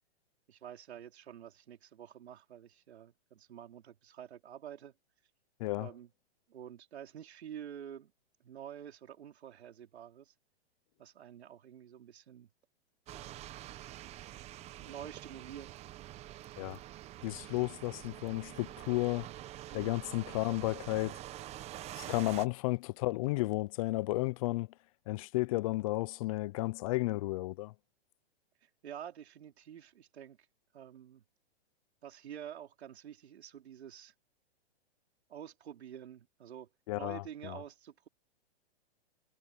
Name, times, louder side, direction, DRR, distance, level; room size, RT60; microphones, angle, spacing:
voice 1, 0.5-4.9 5.8-6.1 6.5-8.1 8.4-10.3 11.0-12.5 13.1-13.5 14.8-15.8 19.7-20.0 22.0-22.3 28.6-30.4 30.7-31.2 32.0-34.1 35.3-36.7 36.9-38.1, right 9 dB, 80° right, 4.3 m, -48 dB
sound 1, 13.1-22.5, right 14 dB, 20° right, 1.0 m, -46 dB
voice 2, 17.2-19.3 19.7-21.2 22.0-24.7 25.1-27.7 36.9-37.6, left 20 dB, 35° left, 0.5 m, -33 dB
hypercardioid pair, 150°, 32 cm